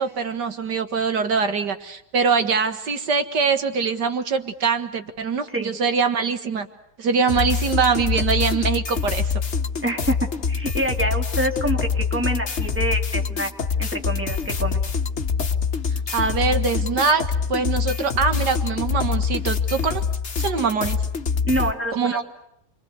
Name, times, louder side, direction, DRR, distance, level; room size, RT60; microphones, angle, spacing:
voice 1, 0.0-6.7 7.0-9.3 16.1-17.2 17.5-20.0 20.4-21.0 21.9-22.2, right 5 dB, 80° right, 9 dB, 2.2 m, -23 dB
sound 1, 7.3-21.7, left 5 dB, 40° left, 1.7 m, -25 dB
voice 2, 9.8-10.2 10.5-13.5 13.8-14.8 21.4-22.2, right 1 dB, 5° right, 3 dB, 3.0 m, -26 dB
30.0 x 23.5 x 8.2 m, 0.76 s
omnidirectional pair, 1.8 m